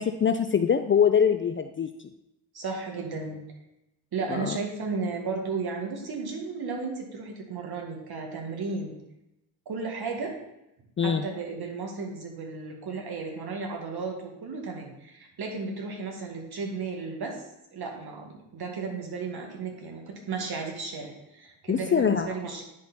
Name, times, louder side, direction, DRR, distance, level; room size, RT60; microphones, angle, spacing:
voice 1, 0.0-1.9 4.3-4.6 11.0-11.3 21.7-22.3, left 7 dB, 25° left, 7 dB, 0.5 m, -23 dB
voice 2, 2.5-3.4 4.1-8.9 9.7-10.4 11.0-17.4 17.7-22.6, right 4 dB, 50° right, 1 dB, 2.0 m, -34 dB
9.8 x 4.2 x 4.2 m, 0.88 s
hypercardioid pair, 55°, 47 cm